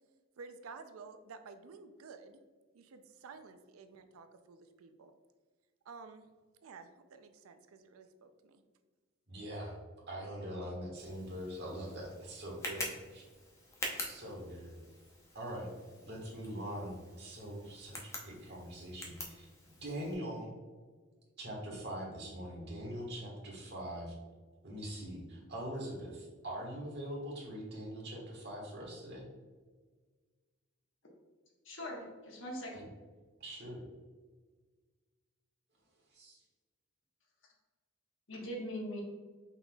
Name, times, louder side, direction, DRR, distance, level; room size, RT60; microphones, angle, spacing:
voice 1, 0.4-2.4 2.7-5.1 5.8-6.3 6.6-8.6, right 4 dB, 90° right, 8 dB, 0.4 m, -52 dB
voice 2, 9.3-9.8 10.1-13.2 14.0-14.8 15.3-15.7 16.0-19.5 19.8-20.5 21.4-24.1 24.6-29.3 32.7-32.9 33.4-33.8 36.1-36.4, equal, 50° right, -2 dB, 1.4 m, -43 dB
Tick, 10.9-20.1, left 1 dB, 15° left, 0.7 m, -46 dB
voice 3, 31.6-32.8 38.3-39.0, equal, 65° left, -2 dB, 1.2 m, -41 dB
5.6 x 4.1 x 2.3 m, 1.4 s
head